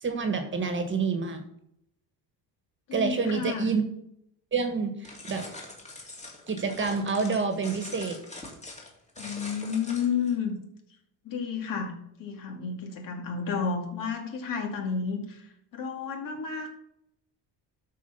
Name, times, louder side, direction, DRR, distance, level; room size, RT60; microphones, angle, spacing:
voice 1, 0.0-1.4 2.9-3.8 4.5-5.5 6.5-8.2, right 5 dB, 30° right, 7 dB, 1.5 m, -28 dB
voice 2, 2.9-3.7 9.2-10.5 11.2-11.9 12.2-15.5 15.7-16.7, left 6 dB, 55° left, 3 dB, 2.3 m, -31 dB
sound 1, 5.0-10.3, left 2 dB, 15° left, 2.5 m, -43 dB
12.5 x 4.8 x 5.7 m, 0.74 s
cardioid pair, 145°, 39 cm